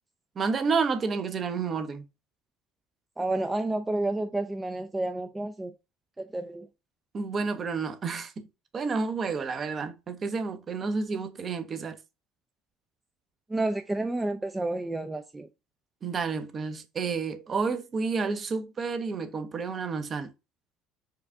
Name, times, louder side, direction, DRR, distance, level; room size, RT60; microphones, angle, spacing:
voice 1, 0.4-2.0 7.1-8.5 8.7-12.0 16.0-20.3, right 4 dB, 40° right, 0.8 m, -30 dB
voice 2, 3.2-5.7 6.2-6.7 13.5-15.5, right 2 dB, 15° right, 0.5 m, -30 dB
4.7 x 2.4 x 3.6 m
hypercardioid pair, 70°, 0 cm